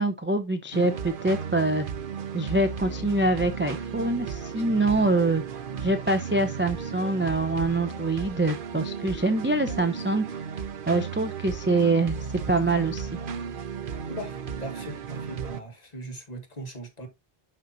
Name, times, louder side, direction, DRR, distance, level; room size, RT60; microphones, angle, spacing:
voice 1, 0.0-1.9 2.3-5.4 5.8-10.3 10.9-12.2 12.5-13.1, right 2 dB, 15° right, 0.6 m, -25 dB
sound 1, 0.7-15.6, right 6 dB, 60° right, 0.9 m, -35 dB
voice 2, 14.1-17.1, right 1 dB, 40° left, 2.0 m, -39 dB
11.5 x 4.4 x 2.7 m
omnidirectional pair, 1.1 m